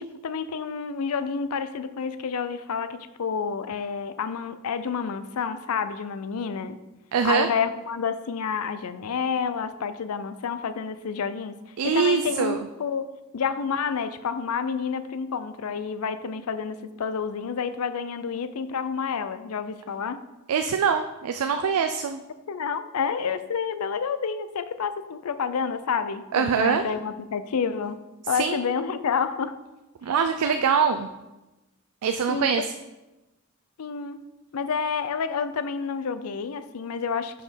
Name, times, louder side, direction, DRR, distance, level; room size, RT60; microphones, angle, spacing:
voice 1, 0.0-6.8 7.2-11.6 11.8-13.0 13.3-20.2 22.5-28.0 28.3-29.5 32.3-32.7 33.8-34.2 34.5-37.4, left 6 dB, 80° left, 12 dB, 0.5 m, -29 dB
voice 2, 7.1-7.5 11.8-12.7 20.5-22.2 26.3-26.8 28.3-28.6 30.0-31.1 32.0-32.7, right 6 dB, 85° right, 7 dB, 0.4 m, -23 dB
5.8 x 5.1 x 5.1 m, 1.0 s
head